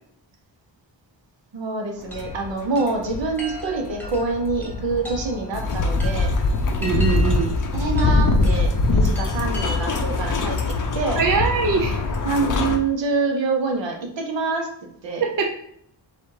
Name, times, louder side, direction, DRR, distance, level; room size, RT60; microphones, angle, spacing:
voice 1, 1.5-6.3 7.7-10.6 10.9-11.2 12.2-14.7 15.0-15.2, right 3 dB, 70° right, 2 dB, 1.0 m, -26 dB
sound 1, 2.1-12.8, left 3 dB, 45° left, 0.5 m, -23 dB
Chime, 2.1-10.2, equal, 5° left, 1.0 m, -40 dB
voice 2, 6.8-7.5 11.2-12.0 15.2-15.5, right 5 dB, 45° right, 2 dB, 0.5 m, -22 dB
4.1 x 2.4 x 4.7 m, 0.70 s
wide cardioid pair, 125°, 45 cm